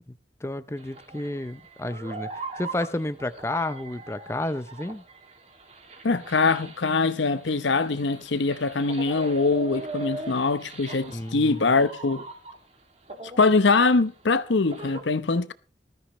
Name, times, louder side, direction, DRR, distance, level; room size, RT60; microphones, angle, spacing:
voice 1, 0.4-5.0 11.1-11.7, left 1 dB, 15° left, 0.6 m, -31 dB
sound 1, 0.8-12.7 13.1-15.0, right 2 dB, 35° right, 2.3 m, -41 dB
voice 2, 6.0-12.2 13.4-15.5, left 3 dB, 85° left, 0.8 m, -23 dB
19.5 x 13.5 x 3.1 m
head